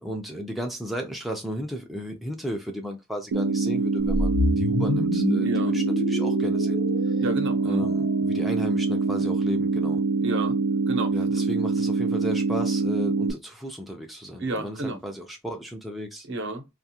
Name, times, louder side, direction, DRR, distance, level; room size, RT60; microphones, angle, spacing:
voice 1, 0.0-6.8 7.6-10.0 11.1-16.3, equal, ahead, 0.3 m, -35 dB
sound 1, 3.3-13.3, right 4 dB, 80° right, 0.4 m, -25 dB
sound 2, 4.1-8.3, left 2 dB, 70° left, 0.5 m, -29 dB
voice 2, 5.4-5.7 7.2-7.9 10.2-10.6 10.9-11.4 14.4-15.0 16.3-16.6, right 2 dB, 60° right, 0.8 m, -31 dB
2.5 x 2.3 x 2.7 m
head